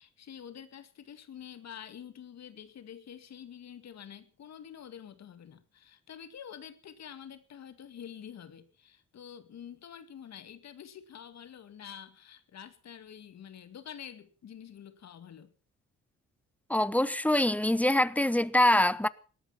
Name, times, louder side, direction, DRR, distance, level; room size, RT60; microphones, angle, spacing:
voice 1, 0.0-15.5, left 8 dB, 60° left, 2.3 m, -47 dB
voice 2, 16.7-19.1, left 1 dB, 5° left, 0.9 m, -24 dB
18.5 x 13.0 x 5.8 m
cardioid pair, 90°, 30 cm